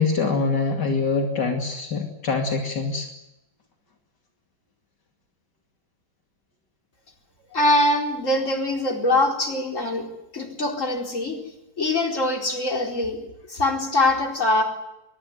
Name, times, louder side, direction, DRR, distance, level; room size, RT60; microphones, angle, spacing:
voice 1, 0.0-3.1, left 4 dB, 75° left, 2 dB, 3.2 m, -24 dB
voice 2, 7.5-10.1 10.3-11.4 11.8-13.2 13.5-14.6, left 1 dB, 45° left, 2 dB, 4.6 m, -23 dB
23.5 x 22.5 x 8.2 m, 0.93 s
omnidirectional pair, 1.8 m